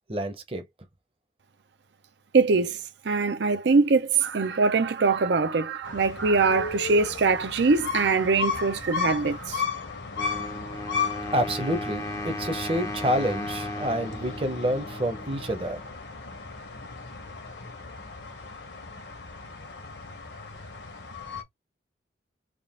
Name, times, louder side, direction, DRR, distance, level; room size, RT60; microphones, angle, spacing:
voice 1, 0.1-0.7 11.3-15.8, equal, 30° right, 0.7 m, -28 dB
voice 2, 2.3-9.6, right 4 dB, 70° right, 0.5 m, -23 dB
sound 1, 5.8-21.4, left 5 dB, 75° left, 1.2 m, -35 dB
Wind instrument woodwind instrument, 10.2-15.8, left 1 dB, 15° left, 0.5 m, -36 dB
3.6 x 2.4 x 3.6 m
head